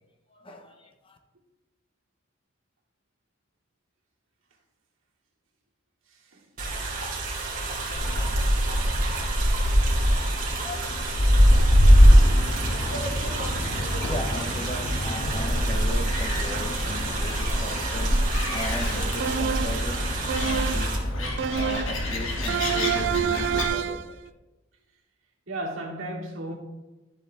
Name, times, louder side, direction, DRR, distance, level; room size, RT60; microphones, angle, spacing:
voice 1, 0.3-1.2 13.9-20.1 20.4-24.2, left 1 dB, 25° left, 1.0 m, -38 dB
voice 2, 6.1-6.8 7.2-7.8 9.9-10.1 25.5-26.5, right 1 dB, 75° right, 2.6 m, -38 dB
sound 1, 6.6-21.0, right 2 dB, 45° right, 2.5 m, -31 dB
Gull seagull, 7.9-23.7, equal, 90° left, 1.9 m, -23 dB
sound 2, 19.2-19.9 20.3-20.9 21.4-22.0 22.5-24.1, right 8 dB, 60° right, 0.3 m, -28 dB
12.5 x 7.7 x 3.5 m
head